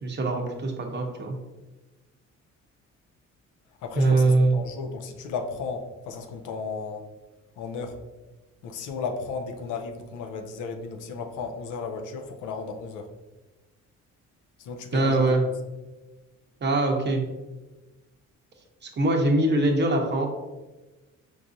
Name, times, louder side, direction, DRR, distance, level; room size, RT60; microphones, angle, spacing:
voice 1, 0.0-1.4 4.0-4.6 14.9-15.4 16.6-17.2 18.8-20.3, right 2 dB, 35° right, 2 dB, 0.7 m, -22 dB
voice 2, 3.8-7.1 7.6-8.0 8.6-13.1 14.6-15.3, left 4 dB, 80° left, 5 dB, 0.5 m, -34 dB
4.6 x 2.5 x 2.6 m, 1.1 s
cardioid pair, 90°, 30 cm